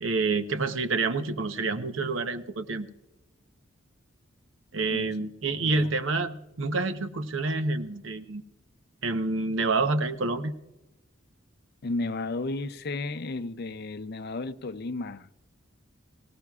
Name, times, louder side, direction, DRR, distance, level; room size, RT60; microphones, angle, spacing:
voice 1, 0.0-2.9 4.7-8.4 9.0-10.5, right 3 dB, 75° right, 0.8 m, -28 dB
voice 2, 5.5-5.9 11.8-15.3, left 2 dB, 50° left, 0.5 m, -33 dB
19.5 x 18.0 x 2.4 m
head